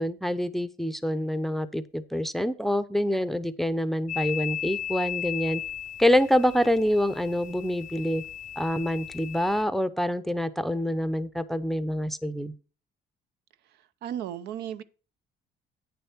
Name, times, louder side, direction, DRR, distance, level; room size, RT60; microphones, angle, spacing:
voice 1, 0.0-5.6 6.0-8.2 8.6-12.5, equal, ahead, 0.6 m, -26 dB
sound 1, 4.1-9.6, left 10 dB, 50° left, 0.4 m, -36 dB
voice 2, 14.0-14.8, right 10 dB, 75° right, 0.6 m, -34 dB
8.9 x 6.9 x 4.4 m
cardioid pair, 110°, 17 cm